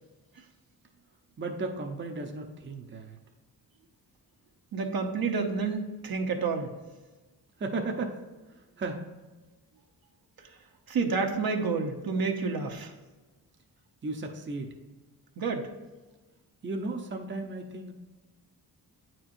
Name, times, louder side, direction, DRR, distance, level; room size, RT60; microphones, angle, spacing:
voice 1, 1.4-3.2 7.6-8.2 8.5-9.0 14.0-14.7 16.6-17.9, right 3 dB, 30° right, 3 dB, 0.7 m, -35 dB
voice 2, 4.7-6.7 10.9-12.9 15.4-15.7, right 4 dB, 60° right, 3 dB, 0.9 m, -29 dB
8.4 x 4.5 x 2.6 m, 1.2 s
cardioid pair, 60°, 41 cm